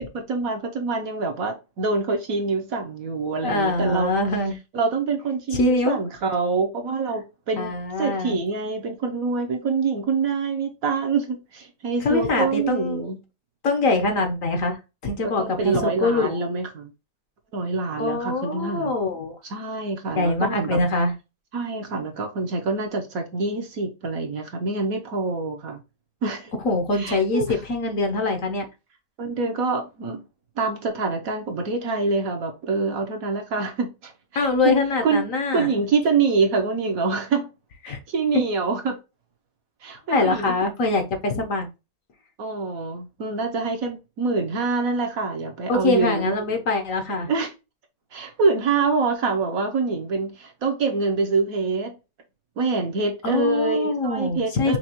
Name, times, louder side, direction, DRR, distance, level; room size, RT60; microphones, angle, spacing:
voice 1, 0.0-4.1 4.7-7.7 8.0-13.2 15.2-16.9 17.5-18.9 19.5-20.8 21.5-25.8 26.2-26.5 26.9-27.5 29.2-30.2 30.6-34.7 35.0-35.3 35.5-37.5 37.9-39.0 39.8-40.5 42.4-46.3 47.3-47.5 48.1-51.9 52.6-54.8, right 4 dB, 60° right, 1.2 m, -25 dB
voice 2, 3.4-4.5 5.5-6.0 7.6-8.4 12.0-13.0 13.6-16.4 18.0-19.4 20.1-21.1 26.6-28.6 34.3-35.7 37.8-38.0 38.3-38.4 40.1-41.7 45.7-47.3 53.2-54.8, left 3 dB, 55° left, 1.2 m, -23 dB
5.9 x 2.4 x 2.8 m
omnidirectional pair, 1.8 m